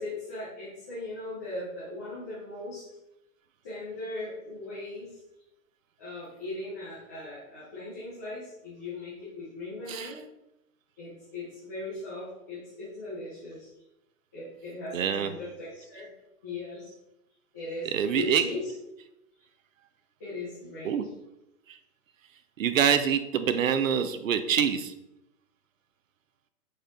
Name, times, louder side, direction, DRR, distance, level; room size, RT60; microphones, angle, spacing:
voice 1, 0.0-2.8 3.6-5.1 6.0-10.2 11.0-13.7 14.3-16.1 16.4-16.9 17.5-17.9 18.2-18.7 20.2-20.9 23.3-23.6, left 2 dB, 15° left, -11 dB, 0.6 m, -38 dB
voice 2, 14.9-15.3 17.8-18.4 20.8-21.0 22.6-24.9, right 8 dB, 60° right, 10 dB, 0.7 m, -25 dB
6.5 x 4.4 x 3.7 m, 0.90 s
hypercardioid pair, 170°, 45 cm